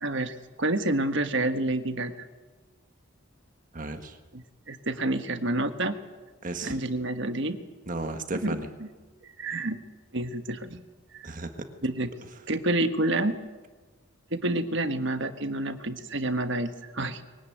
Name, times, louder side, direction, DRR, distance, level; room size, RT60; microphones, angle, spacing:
voice 1, 0.0-2.3 4.3-6.0 6.6-7.6 8.4-8.9 9.2-9.8 10.1-10.8 11.1-11.3 11.8-12.1 12.5-13.4 14.3-17.2, right 2 dB, 55° right, 8 dB, 1.5 m, -29 dB
voice 2, 3.7-4.2 6.4-6.8 7.9-8.7 11.2-11.7, right 2 dB, 40° right, 7 dB, 1.6 m, -34 dB
22.5 x 18.0 x 9.3 m, 1.3 s
head